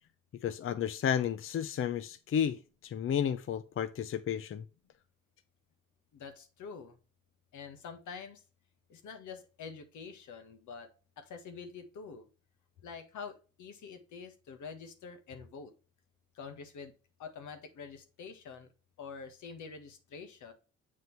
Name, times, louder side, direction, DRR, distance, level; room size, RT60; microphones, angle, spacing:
voice 1, 0.4-4.6, left 8 dB, 45° left, 0.6 m, -32 dB
voice 2, 6.1-7.0 7.5-8.4 8.9-10.9 11.2-12.3 12.8-15.7 16.3-16.9 17.2-18.7 19.0-20.5, left 5 dB, 75° left, 1.7 m, -46 dB
7.7 x 5.3 x 3.4 m
cardioid pair, 90°, 30 cm